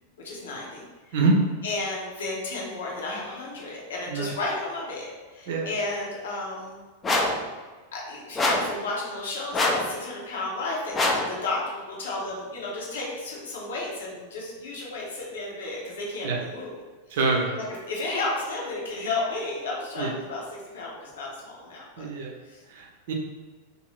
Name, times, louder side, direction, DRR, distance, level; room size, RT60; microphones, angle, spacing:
voice 1, 0.2-1.2 1.6-6.8 7.9-16.8 17.1-17.2 17.5-22.1 22.4-22.6, left 2 dB, 65° left, -4 dB, 0.8 m, -33 dB
sound 1, 7.0-7.4 8.4-8.8 9.5-9.9 10.9-11.3, left 2 dB, 20° left, 0.4 m, -23 dB
voice 2, 17.1-17.6 20.0-20.1 22.0-22.3 22.7-23.1, right 3 dB, 60° right, 1 dB, 0.6 m, -25 dB
2.6 x 2.6 x 3.2 m, 1.3 s
figure-of-eight pair, 90°, 0 cm